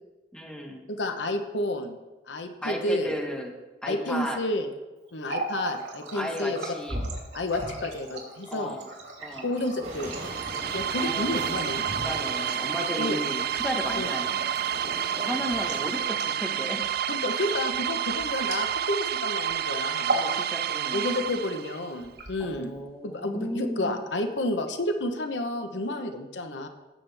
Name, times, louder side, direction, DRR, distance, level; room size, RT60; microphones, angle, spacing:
voice 1, 0.3-0.8 2.6-4.4 6.1-7.0 8.5-8.9 9.2-9.5 11.0-11.4 11.9-14.6 15.2-16.9 20.1-21.2 22.4-24.0, equal, 5° left, 2 dB, 1.3 m, -34 dB
voice 2, 0.9-2.0 2.3-3.1 3.9-4.7 5.1-6.6 7.3-8.8 9.4-10.1 10.7-11.8 13.0-13.2 14.0-14.1 17.1-20.2 20.9-22.7 23.0-26.7, left 1 dB, 85° left, 6 dB, 1.0 m, -30 dB
Water tap faucet, 5.1-19.1 19.4-19.6 19.9-20.4 20.7-21.4 22.0-22.8, right 2 dB, 75° right, 3.0 m, -37 dB
sound 1, 9.8-16.0, right 1 dB, 40° right, 3.9 m, -41 dB
sound 2, 10.1-21.9, right 9 dB, 55° right, 0.4 m, -29 dB
17.0 x 7.4 x 3.5 m, 1.1 s
head